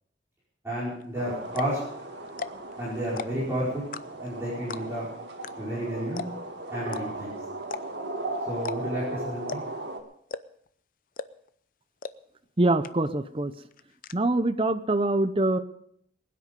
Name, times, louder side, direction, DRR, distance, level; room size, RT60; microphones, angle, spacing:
voice 1, 0.6-1.8 2.8-3.9 4.2-5.1 5.6-6.2 6.7-7.3 8.5-9.6, right 1 dB, 15° right, -9 dB, 5.0 m, -31 dB
sound 1, 1.0-1.1 1.5-1.8 2.3-2.7 3.0-3.5 3.9-4.3 4.7-5.0 5.4-5.5 5.8-5.9 6.2-6.5 6.9-7.0 7.6-8.1 8.6-9.0 9.5-9.8 10.3-10.7 11.2-11.5 12.0-12.1 12.5-12.6 12.8-13.3 13.5-14.1, left 4 dB, 50° left, 0.6 m, -36 dB
sound 2, 1.1-10.0, right 2 dB, 80° right, 2.1 m, -37 dB
voice 2, 12.6-13.5 14.1-15.6, right 2 dB, 30° right, 10 dB, 0.7 m, -24 dB
21.0 x 9.6 x 5.3 m, 0.68 s
head